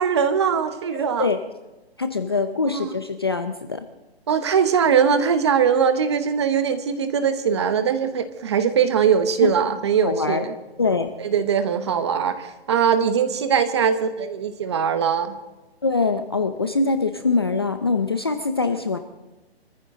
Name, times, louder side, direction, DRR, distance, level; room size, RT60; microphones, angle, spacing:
voice 1, 0.0-1.3 2.7-2.9 4.3-10.5 11.2-15.4, right 7 dB, 25° right, 10 dB, 1.0 m, -21 dB
voice 2, 0.9-1.4 2.0-3.8 9.4-9.5 10.0-10.4 10.8-11.1 15.8-19.0, left 4 dB, 25° left, 8 dB, 0.5 m, -23 dB
25.0 x 14.5 x 3.7 m, 1.1 s
hypercardioid pair, 170°, 32 cm